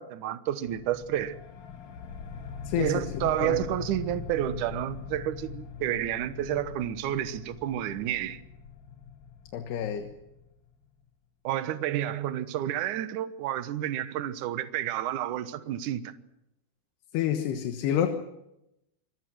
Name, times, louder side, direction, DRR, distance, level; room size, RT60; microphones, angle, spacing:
voice 1, 0.0-1.4 2.8-8.4 11.4-16.1, right 12 dB, 70° right, 1.9 m, -30 dB
sound 1, 0.7-10.8, left 6 dB, 55° left, 3.0 m, -42 dB
voice 2, 2.7-3.6 9.5-10.1 17.1-18.1, left 10 dB, 70° left, 3.3 m, -29 dB
26.5 x 23.0 x 6.2 m
omnidirectional pair, 5.1 m